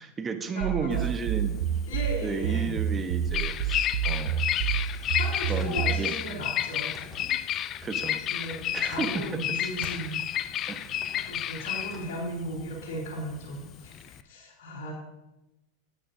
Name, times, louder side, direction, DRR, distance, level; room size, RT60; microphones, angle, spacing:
voice 1, 0.0-1.6 2.2-4.4 4.7-4.9 5.5-6.1 7.8-8.2 8.7-9.1 10.7-10.8 11.1-11.3, right 5 dB, 25° right, 7 dB, 1.0 m, -33 dB
voice 2, 0.5-1.1 1.9-2.8 5.1-6.9 8.3-10.2 11.2-14.9, equal, 60° left, -4 dB, 3.3 m, -36 dB
sound 1, 0.6-6.1, right 10 dB, 65° right, 0.4 m, -29 dB
Bird vocalization bird call bird song, 0.9-14.2, left 11 dB, 40° left, 0.4 m, -31 dB
sound 2, 4.9-12.1, left 1 dB, 5° left, 2.5 m, -49 dB
13.5 x 8.4 x 2.7 m, 0.94 s
hypercardioid pair, 95°, 0 cm